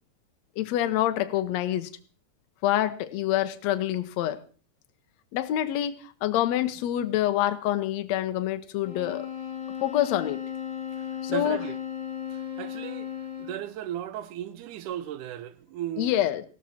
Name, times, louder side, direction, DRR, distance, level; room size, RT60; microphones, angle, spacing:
voice 1, 0.6-1.9 2.6-4.4 5.3-6.0 6.2-9.3 9.8-10.4 11.2-11.6 16.0-16.4, left 12 dB, 70° left, 2.0 m, -26 dB
sound 1, 8.8-13.7, left 9 dB, 35° left, 3.4 m, -35 dB
voice 2, 11.3-11.8 12.3-13.1 13.4-16.1, right 11 dB, 80° right, 2.3 m, -36 dB
16.0 x 12.5 x 4.3 m
omnidirectional pair, 3.6 m